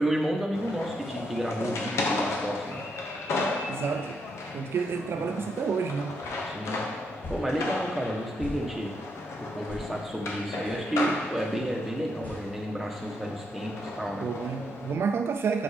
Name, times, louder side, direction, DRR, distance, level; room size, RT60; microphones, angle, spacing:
voice 1, 0.0-2.8 5.1-5.4 6.4-6.8 7.3-8.9 9.4-14.3, right 1 dB, 5° right, -1 dB, 1.1 m, -31 dB
sound 1, 0.5-14.9, left 2 dB, 85° left, 1.0 m, -35 dB
voice 2, 3.6-4.2 4.5-6.1 14.2-15.6, right 6 dB, 65° right, 6 dB, 0.5 m, -29 dB
sound 2, 6.2-6.4 7.2-7.5 8.4-8.6 9.7-9.9 10.6-10.8 12.2-12.4, left 1 dB, 45° left, 1.9 m, -39 dB
6.2 x 5.2 x 5.0 m, 1.1 s
wide cardioid pair, 140°, 4 cm